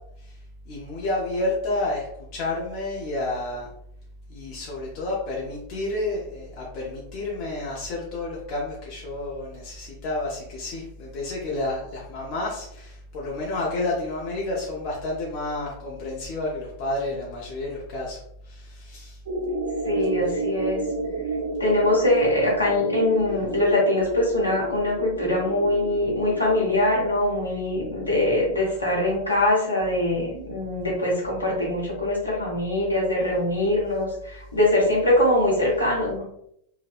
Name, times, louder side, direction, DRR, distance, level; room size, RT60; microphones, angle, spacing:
voice 1, 0.7-2.1 2.3-3.7 4.3-18.2 18.5-19.2, left 2 dB, 40° left, -4 dB, 0.5 m, -30 dB
sound 1, 19.3-26.8, right 3 dB, 55° right, 0.4 m, -31 dB
voice 2, 19.8-20.8 21.6-36.2, left 1 dB, 80° left, -4 dB, 0.8 m, -23 dB
2.6 x 2.0 x 2.3 m, 0.73 s
figure-of-eight pair, 90°, 0 cm